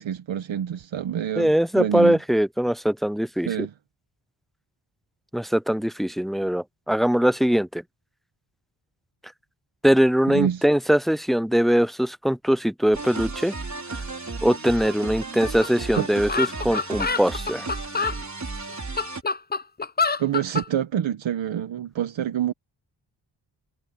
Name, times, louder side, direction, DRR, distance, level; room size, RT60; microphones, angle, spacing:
voice 1, 0.0-2.2 3.5-3.7 10.3-10.6 15.9-16.1 20.2-22.5, right 10 dB, 70° right, 1.2 m, -27 dB
voice 2, 1.4-3.5 5.3-7.8 9.8-13.5 14.4-17.7, equal, ahead, 0.4 m, -21 dB
sound 1, 12.9-19.2, right 3 dB, 35° right, 4.7 m, -34 dB
sound 2, 15.6-15.7 15.9-16.0 16.3-18.2 18.7-20.7, left 4 dB, 20° left, 0.7 m, -26 dB
cardioid pair, 65°, 48 cm